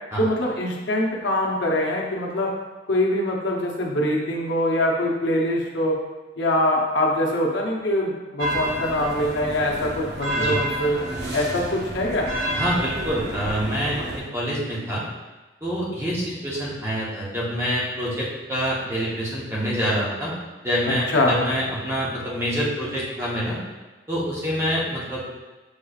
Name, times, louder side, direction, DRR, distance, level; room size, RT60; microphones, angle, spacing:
voice 1, 0.2-2.5 2.9-6.0 6.4-11.0 11.3-12.3 21.1-21.4, left 1 dB, 80° left, -2 dB, 0.8 m, -23 dB
sound 1, 8.4-14.2, right 1 dB, 65° right, 0.6 m, -29 dB
voice 2, 12.5-15.0 15.6-20.3 20.6-23.6 24.1-25.3, equal, 15° right, -6 dB, 0.9 m, -26 dB
6.4 x 3.1 x 2.4 m, 1.2 s
head